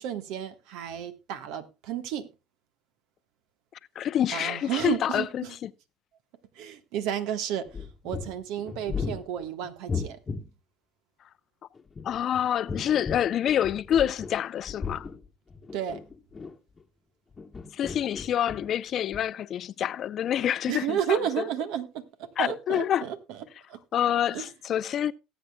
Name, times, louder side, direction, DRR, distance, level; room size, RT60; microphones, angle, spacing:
voice 1, 0.0-2.3 4.3-5.6 6.5-10.2 15.7-16.0 20.7-23.4 23.7-23.8 24.3-24.5, right 9 dB, 75° right, 1.3 m, -32 dB
voice 2, 4.0-5.7 12.0-15.1 17.7-21.5 22.4-23.0 23.9-25.1, left 10 dB, 50° left, 0.5 m, -27 dB
sound 1, 7.7-10.5 11.8-14.4 14.7-16.8 17.3-18.8 19.1-19.2, left 5 dB, 25° left, 1.1 m, -36 dB
19.0 x 8.3 x 2.2 m
supercardioid pair, 90°, 0 cm